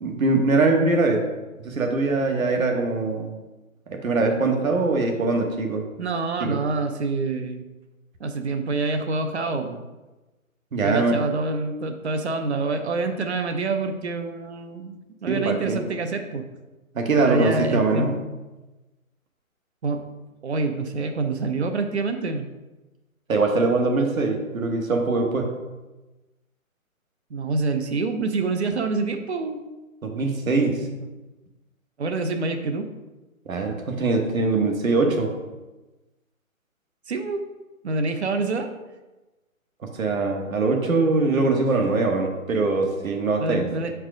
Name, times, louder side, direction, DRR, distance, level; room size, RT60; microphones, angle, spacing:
voice 1, 0.0-1.2 1.6-3.3 3.9-5.8 6.4-6.6 10.7-11.2 15.3-15.8 16.9-18.1 23.3-25.5 30.0-30.9 33.5-35.3 39.9-43.7, right 3 dB, 70° right, 3 dB, 1.2 m, -22 dB
voice 2, 6.0-7.7 8.2-9.8 10.8-15.0 15.2-16.4 17.1-18.1 19.8-20.0 20.4-22.5 27.3-29.6 32.0-32.9 37.1-37.5 37.8-38.7 43.4-43.9, right 3 dB, 50° right, 6 dB, 0.7 m, -26 dB
6.0 x 4.7 x 3.7 m, 1.1 s
hypercardioid pair, 165°, 42 cm